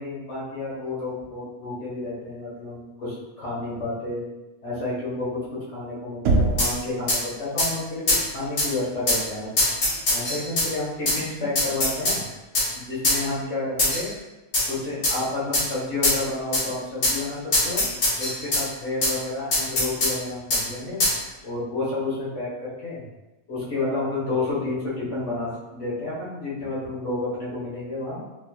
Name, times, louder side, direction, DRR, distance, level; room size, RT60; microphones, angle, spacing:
voice 1, 0.0-4.3 4.6-9.5 10.1-12.2 12.7-14.1 14.7-17.8 18.2-21.0 21.4-23.1 23.5-28.2, left 2 dB, 65° left, -8 dB, 1.7 m, -30 dB
Knock, 6.2-6.9, right 2 dB, 75° right, 0.9 m, -21 dB
sound 1, 6.6-6.7 7.1-7.2 7.6-7.7 8.1-8.2 8.6-8.7 9.1-9.2 9.6-10.7 11.1-11.2 11.6-12.2 12.5-12.7 13.0-13.2 13.8-14.1 14.5-14.7 15.0-15.2 15.5-15.7 16.0-16.2 16.5-16.6 17.0-17.2 17.5-18.6 19.0-19.1 19.5-20.1 20.5-20.6 21.0-21.2, left 1 dB, 90° left, 1.6 m, -22 dB
4.1 x 2.9 x 2.3 m, 1.1 s
omnidirectional pair, 1.3 m